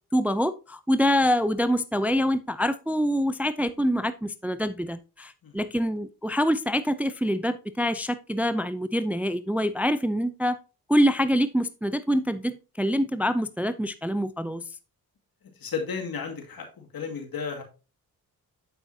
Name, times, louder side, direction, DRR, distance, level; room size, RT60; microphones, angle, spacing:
voice 1, 0.1-10.6 10.9-14.6, equal, 5° right, 13 dB, 0.5 m, -25 dB
voice 2, 15.6-17.6, left 6 dB, 65° left, 2 dB, 2.3 m, -33 dB
8.2 x 6.7 x 2.7 m, 0.32 s
supercardioid pair, 55°, 38 cm